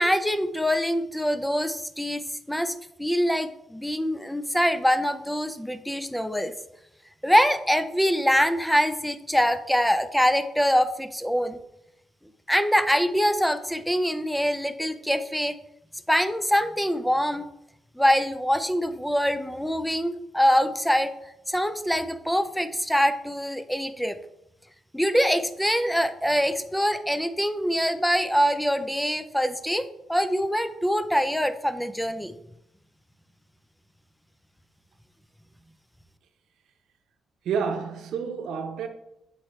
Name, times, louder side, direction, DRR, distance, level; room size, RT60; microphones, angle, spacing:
voice 1, 0.0-6.5 7.2-11.6 12.5-15.5 16.1-17.4 18.0-21.1 21.5-24.2 24.9-32.3, equal, ahead, 0.4 m, -24 dB
voice 2, 37.4-38.9, right 6 dB, 80° right, 0.8 m, -29 dB
8.0 x 4.3 x 3.1 m
cardioid pair, 165°, 0 cm